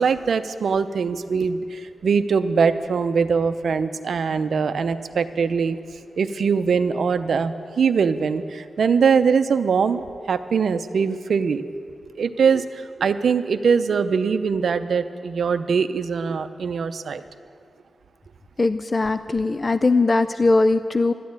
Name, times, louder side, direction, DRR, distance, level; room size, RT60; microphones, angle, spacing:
voice 1, 0.0-5.8 6.2-11.6 12.1-17.2, right 5 dB, 70° right, 11 dB, 0.6 m, -22 dB
voice 2, 18.6-21.1, left 3 dB, 35° left, 12 dB, 0.3 m, -20 dB
12.5 x 9.4 x 8.8 m, 2.3 s
cardioid pair, 85°, 0 cm